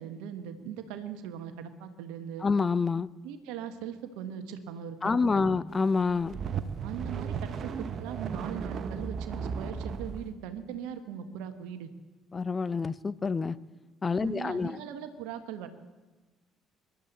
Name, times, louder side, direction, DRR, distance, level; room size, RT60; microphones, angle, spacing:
voice 1, 0.0-2.5 3.2-5.6 6.8-11.9 14.2-15.7, right 8 dB, 70° right, 9 dB, 1.4 m, -40 dB
voice 2, 2.4-3.1 5.0-6.4 12.3-13.6 14.0-14.8, left 4 dB, 30° left, 18 dB, 0.6 m, -27 dB
sound 1, 6.0-10.2, right 6 dB, 50° right, 1.1 m, -35 dB
26.0 x 12.5 x 4.1 m, 1.2 s
figure-of-eight pair, 50°, 0 cm